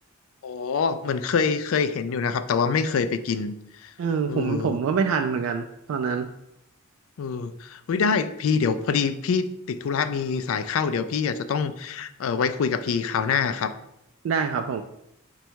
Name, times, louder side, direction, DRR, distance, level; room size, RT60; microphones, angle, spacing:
voice 1, 0.4-3.5 3.8-3.9 4.3-4.8 7.2-13.7, left 5 dB, 70° left, 12 dB, 0.3 m, -25 dB
voice 2, 4.0-6.3 14.2-14.8, right 6 dB, 75° right, 6 dB, 0.3 m, -25 dB
5.2 x 2.3 x 4.4 m, 0.81 s
head